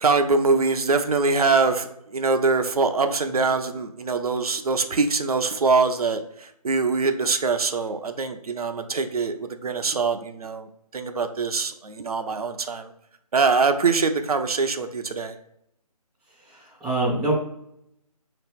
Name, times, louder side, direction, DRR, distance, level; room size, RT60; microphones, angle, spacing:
voice 1, 0.0-1.9 2.1-6.2 6.6-9.3 9.6-10.7 10.9-12.9 13.3-15.3, right 4 dB, 65° right, 7 dB, 0.5 m, -23 dB
voice 2, 16.5-17.3, right 2 dB, ahead, -9 dB, 0.6 m, -25 dB
5.1 x 3.0 x 3.4 m, 0.77 s
figure-of-eight pair, 165°, 20 cm